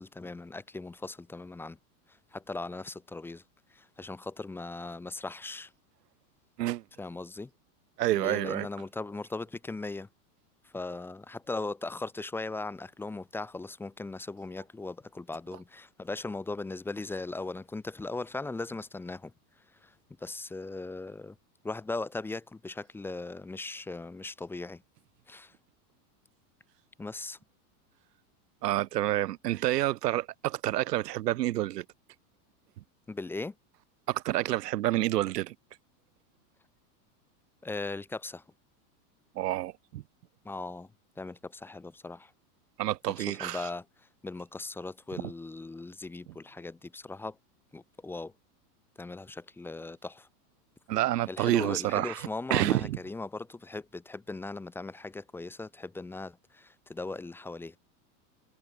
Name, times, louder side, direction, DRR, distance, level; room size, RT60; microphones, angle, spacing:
voice 1, 0.0-1.8 2.3-3.4 3.7-5.7 7.0-7.5 8.1-10.1 10.6-19.3 19.8-19.9 20.2-21.4 21.6-24.8 25.3-25.5 27.0-27.4 33.1-33.5 37.6-38.4 40.5-40.9 41.2-42.3 43.2-43.8 44.2-47.4 47.7-48.3 49.0-50.3 51.3-57.8, left 3 dB, 5° left, 1.7 m, -38 dB
voice 2, 8.0-8.7 28.6-31.8 34.1-35.5 39.3-40.0 42.8-43.7 50.9-53.0, right 15 dB, 85° right, 1.5 m, -28 dB
supercardioid pair, 180°, 47 cm